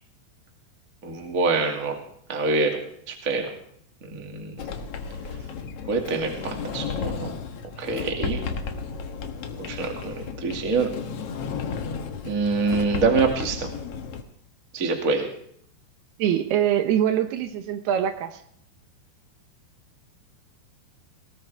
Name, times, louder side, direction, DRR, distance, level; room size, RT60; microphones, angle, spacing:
voice 1, 1.0-2.0 2.3-2.8 3.1-3.5 4.1-4.5 5.9-7.3 7.8-8.4 9.6-10.9 12.2-13.7 14.7-15.3, right 4 dB, 30° right, 2 dB, 1.8 m, -25 dB
Sliding door, 4.6-14.2, left 5 dB, 85° left, 1.3 m, -33 dB
voice 2, 16.2-18.4, right 10 dB, 75° right, 7 dB, 3.0 m, -23 dB
20.0 x 18.0 x 3.5 m, 0.67 s
omnidirectional pair, 4.8 m